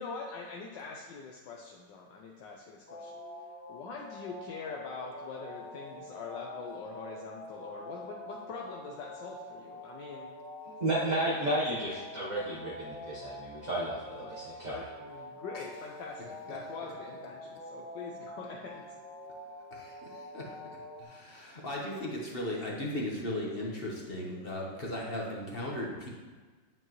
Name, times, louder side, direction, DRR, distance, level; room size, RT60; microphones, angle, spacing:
voice 1, 0.0-3.2 3.7-10.3 11.0-11.8 14.7-18.9, left 4 dB, 75° left, -1 dB, 1.4 m, -43 dB
sound 1, 2.9-21.0, left 1 dB, 65° right, 3.6 m, -46 dB
voice 2, 10.8-14.7, right 1 dB, 25° right, -7 dB, 1.1 m, -32 dB
voice 3, 16.5-16.9 19.7-26.1, left 1 dB, 35° left, -2 dB, 1.3 m, -37 dB
9.8 x 7.7 x 3.1 m, 1.4 s
omnidirectional pair, 2.0 m